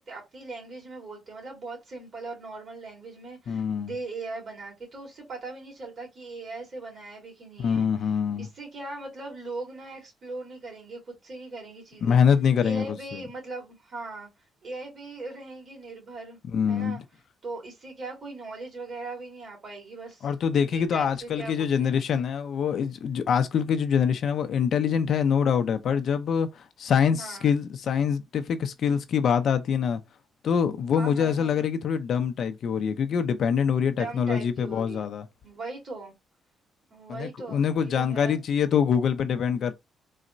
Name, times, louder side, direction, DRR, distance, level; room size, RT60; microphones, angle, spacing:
voice 1, 0.0-7.9 8.4-12.2 12.6-14.3 14.6-16.4 16.7-17.0 17.4-20.3 20.7-22.0 27.2-27.5 30.9-31.6 33.8-35.1 35.4-36.1 36.9-38.4, right 3 dB, 50° right, 2.2 m, -39 dB
voice 2, 3.5-3.9 7.6-8.5 12.0-13.2 16.5-17.0 20.2-30.0 30.4-35.3 37.1-39.7, left 7 dB, 60° left, 0.5 m, -25 dB
3.9 x 2.1 x 2.5 m
cardioid pair, 90°, 0 cm